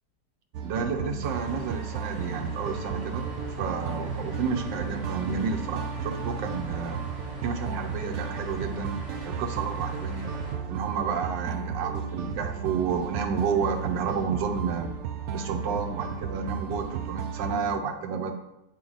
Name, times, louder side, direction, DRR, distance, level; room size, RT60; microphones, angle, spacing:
sound 1, 0.5-17.6, right 6 dB, 65° right, 0.9 m, -34 dB
voice 1, 0.6-3.2 3.6-7.0 7.4-8.9 9.2-10.3 10.7-14.9 15.3-18.3, right 6 dB, 85° right, 3 dB, 1.4 m, -31 dB
sound 2, 1.2-10.5, left 3 dB, 5° right, 2.5 m, -42 dB
7.4 x 5.1 x 3.9 m, 0.89 s
omnidirectional pair, 1.9 m